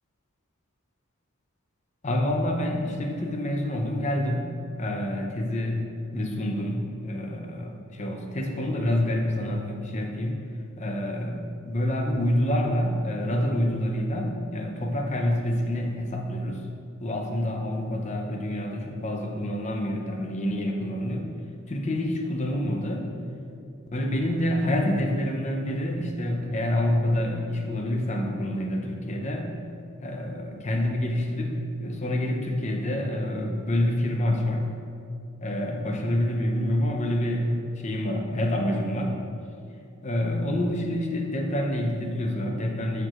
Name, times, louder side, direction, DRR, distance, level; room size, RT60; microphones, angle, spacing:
voice 1, 2.0-5.8 6.1-10.4 10.8-16.6 17.0-21.3 21.7-23.1 23.9-29.5 30.0-34.6 35.4-39.2 40.0-43.1, left 1 dB, 35° left, 2 dB, 0.6 m, -27 dB
13.5 x 4.6 x 2.5 m, 2.5 s
head